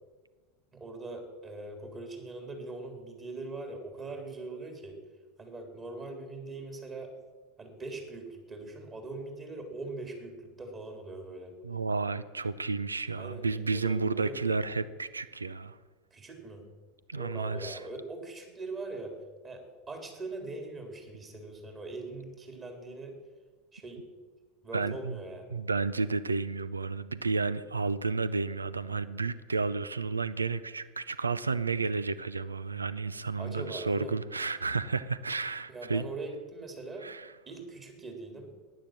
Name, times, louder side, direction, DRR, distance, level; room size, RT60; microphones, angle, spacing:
voice 1, 0.7-5.0 5.4-7.1 7.6-11.5 13.2-14.4 16.1-16.7 17.2-19.2 19.4-23.2 23.7-24.1 24.6-25.6 33.4-34.2 35.7-37.1 37.5-38.5, right 2 dB, 30° right, 3 dB, 3.8 m, -41 dB
voice 2, 11.6-15.8 17.1-17.8 24.7-25.2 25.5-36.1 37.0-37.3, right 4 dB, 85° right, 16 dB, 0.6 m, -32 dB
14.5 x 10.5 x 7.7 m, 1.4 s
figure-of-eight pair, 80°, 0 cm